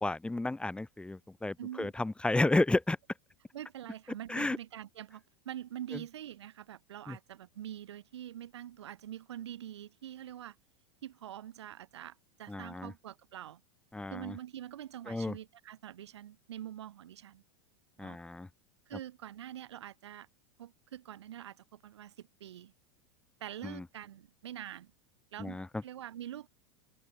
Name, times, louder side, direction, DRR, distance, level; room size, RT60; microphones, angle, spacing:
voice 1, 0.0-3.0 4.3-4.6 7.1-7.2 12.5-12.9 13.9-14.3 15.1-15.3 18.0-18.5 23.6-23.8 25.4-25.7, left 2 dB, 5° left, 1.0 m, -32 dB
voice 2, 1.6-1.9 3.5-10.6 11.0-13.6 14.1-17.4 18.0-18.2 18.9-20.3 20.6-22.7 23.4-24.9 25.3-26.5, right 11 dB, 80° right, 3.7 m, -45 dB
open air
hypercardioid pair, 100°, 14 cm